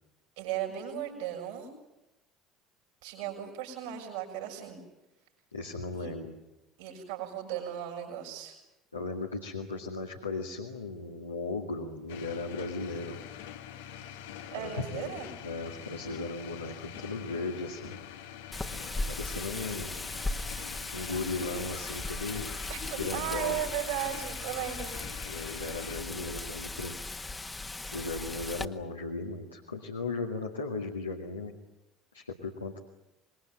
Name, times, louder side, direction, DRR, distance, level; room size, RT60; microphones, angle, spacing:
voice 1, 0.4-1.7 3.0-4.8 5.9-6.1 6.8-8.6 14.5-15.3 22.7-24.9, right 10 dB, 65° right, 1 dB, 6.3 m, -36 dB
voice 2, 5.5-6.3 8.9-13.2 14.6-18.0 19.1-20.0 20.9-22.5 23.0-23.6 25.2-27.0 27.8-31.5 32.1-32.8, left 3 dB, 85° left, 0 dB, 2.0 m, -36 dB
sound 1, 12.1-26.0, left 10 dB, 65° left, 1.3 m, -45 dB
Wind, 18.5-28.6, left 2 dB, 15° left, 1.6 m, -38 dB
26.5 x 21.5 x 9.0 m, 0.93 s
figure-of-eight pair, 60°, 0 cm